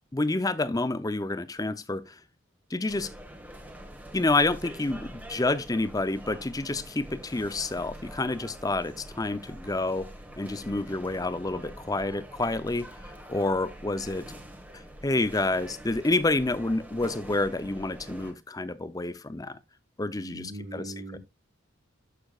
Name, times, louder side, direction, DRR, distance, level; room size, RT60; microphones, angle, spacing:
voice 1, 0.1-2.1 2.7-3.1 4.1-10.1 10.4-12.9 13.3-14.4 15.0-19.6 20.0-21.2, left 2 dB, 15° left, 0.6 m, -28 dB
sound 1, 2.9-18.3, equal, 10° right, 1.4 m, -45 dB
voice 2, 20.1-21.2, right 1 dB, 50° right, 1.9 m, -40 dB
11.5 x 6.9 x 2.4 m
head